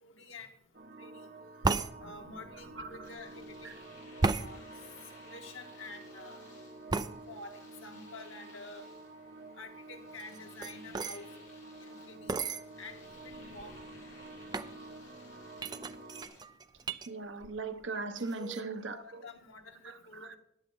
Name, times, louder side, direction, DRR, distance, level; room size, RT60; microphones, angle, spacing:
voice 1, 0.0-0.5 1.0-1.3 2.0-3.7 4.3-4.6 5.2-6.4 7.3-8.9 9.6-11.3 11.8-12.3 12.8-13.7 18.1-20.4, left 2 dB, 90° left, 1.7 m, -49 dB
sound 1, 0.7-16.3, right 2 dB, 50° right, 1.5 m, -50 dB
sound 2, 1.6-1.9 4.2-4.5 6.9-7.1 10.2-11.2 12.3-12.6 13.3-13.4 13.6-14.0 14.5-14.7 15.6-17.1 17.4-17.9 18.2-18.6, right 3 dB, 20° right, 0.4 m, -33 dB
voice 2, 2.8-3.1 3.6-3.7 17.1-19.2 19.8-19.9 20.2-20.3, right 3 dB, 70° right, 1.0 m, -39 dB
Domestic sounds home sounds, 3.0-16.4, left 3 dB, 40° left, 4.0 m, -59 dB
14.5 x 10.5 x 3.9 m
head